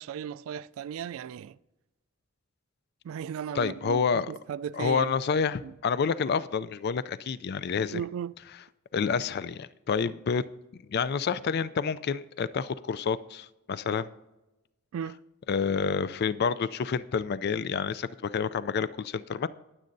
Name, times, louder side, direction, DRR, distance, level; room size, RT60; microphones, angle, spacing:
voice 1, 0.0-1.6 3.0-5.1 5.6-5.7 7.9-8.3 14.9-15.2, right 8 dB, 90° right, 0.3 m, -36 dB
voice 2, 3.5-4.3 4.7-8.0 8.9-10.4 10.9-14.1 15.5-19.5, left 6 dB, 50° left, 0.4 m, -28 dB
19.5 x 7.5 x 2.6 m
head